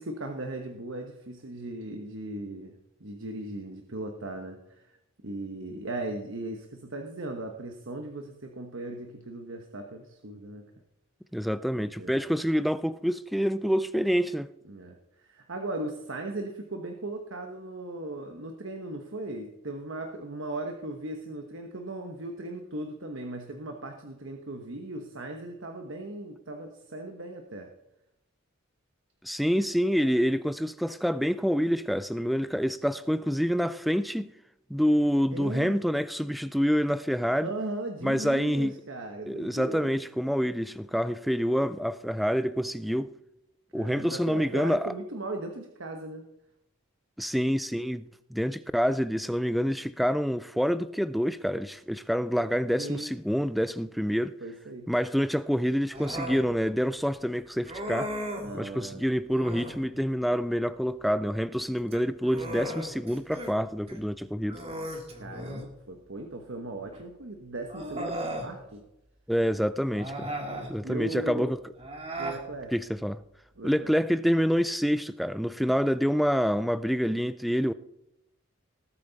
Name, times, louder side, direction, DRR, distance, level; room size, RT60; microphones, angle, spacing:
voice 1, 0.0-2.7 3.0-4.9 5.2-10.6 11.7-12.1 14.7-27.7 35.3-35.8 37.4-40.0 43.7-46.2 52.8-53.1 54.4-54.9 58.4-59.0 65.2-68.8 70.3-71.5 72.2-72.7 73.6-73.9 75.6-75.9, right 2 dB, 65° right, 1.1 m, -38 dB
voice 2, 11.3-14.5 29.2-34.3 34.7-37.5 38.0-38.8 39.3-43.1 43.7-44.9 47.2-54.3 54.9-58.1 58.5-64.6 69.3-70.3 70.7-71.6 72.7-73.2 73.6-77.7, equal, ahead, 0.3 m, -27 dB
Human voice, 55.9-56.4 57.7-58.6 59.3-59.8 61.8-63.5 63.9-64.0 64.5-65.7 66.9-67.0 67.7-68.5 69.9-70.7 71.8-72.4, right 1 dB, 30° right, 2.0 m, -36 dB
19.0 x 8.5 x 4.0 m
head